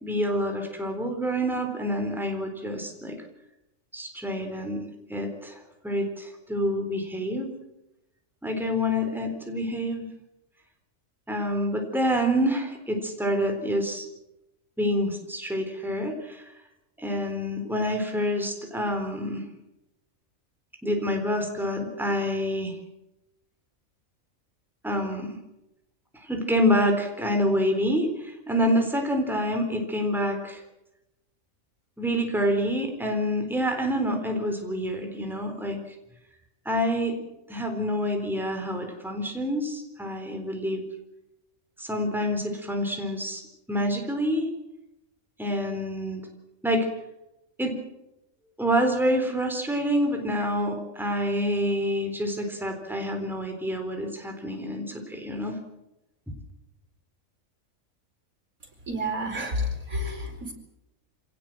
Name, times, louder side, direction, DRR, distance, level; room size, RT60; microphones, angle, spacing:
voice 1, 0.0-3.2 3.9-4.8 5.1-7.5 8.4-10.1 11.3-14.1 14.8-16.5 17.0-19.4 20.8-22.8 24.8-25.4 26.1-30.6 32.0-35.8 36.7-37.2 37.5-40.8 41.8-43.4 43.7-44.5 45.4-46.2 46.6-46.9 47.6-47.8 48.6-55.6 56.3-56.4, equal, ahead, 4 dB, 3.8 m, -27 dB
voice 2, 58.9-60.5, equal, 90° right, 2 dB, 4.9 m, -30 dB
26.0 x 18.5 x 7.7 m, 0.91 s
omnidirectional pair, 1.4 m